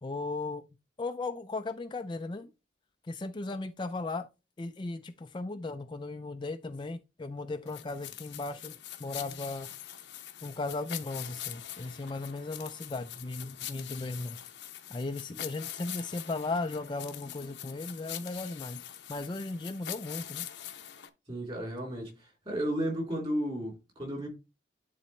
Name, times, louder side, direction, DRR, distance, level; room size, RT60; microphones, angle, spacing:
voice 1, 0.0-0.6 1.0-2.5 3.1-4.3 4.6-9.7 10.4-14.4 14.9-18.8 19.1-20.5, left 3 dB, 25° left, 0.4 m, -36 dB
sound 1, 7.7-21.1, left 12 dB, 70° left, 0.8 m, -43 dB
voice 2, 21.3-24.3, right 1 dB, 30° right, 3.5 m, -33 dB
10.5 x 4.0 x 3.2 m
head